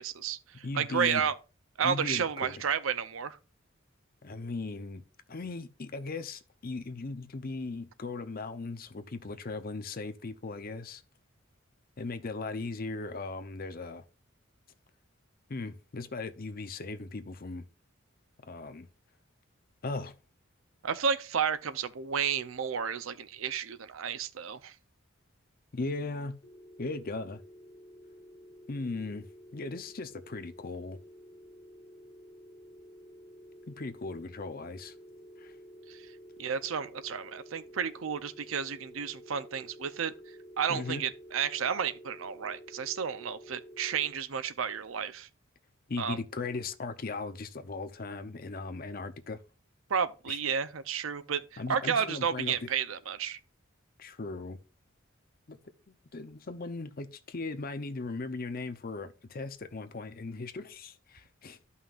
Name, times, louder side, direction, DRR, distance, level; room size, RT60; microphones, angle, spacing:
voice 1, 0.0-1.3 1.8-3.4 20.8-24.7 35.9-36.0 36.4-40.1 40.6-45.3 46.0-46.2 49.9-53.4, right 7 dB, 90° right, 0.6 m, -32 dB
voice 2, 0.6-1.2 1.8-2.6 4.2-5.0 5.3-11.0 12.0-14.0 15.5-17.6 18.4-18.9 19.8-20.1 25.7-26.4 26.8-27.4 28.7-29.3 29.5-31.0 33.7-34.9 35.4-35.5 40.7-41.1 45.9-49.4 50.3-50.4 51.6-52.6 54.0-54.6 55.5-55.6 55.9-61.6, left 3 dB, 45° left, 0.7 m, -38 dB
sound 1, 26.4-44.1, equal, 30° left, 1.6 m, -51 dB
13.0 x 5.6 x 2.5 m
head